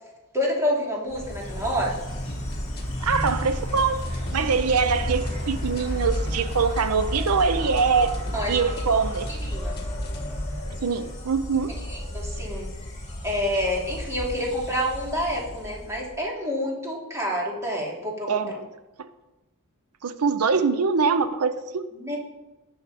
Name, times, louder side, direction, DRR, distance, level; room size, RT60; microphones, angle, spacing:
voice 1, 0.3-2.0 8.3-8.6 9.4-9.8 11.9-12.7 13.2-18.5 21.9-22.2, equal, 15° right, 2.9 m, -28 dB
Insect, 1.1-16.2, equal, 30° left, 3.4 m, -32 dB
sound 1, 2.3-10.3, left 1 dB, 45° left, 1.8 m, -41 dB
voice 2, 3.0-4.1 4.3-8.2 8.5-9.3 10.8-11.8 18.3-18.7 19.0-19.1 20.0-21.9, right 5 dB, 85° right, 0.7 m, -23 dB
18.5 x 6.7 x 4.2 m
head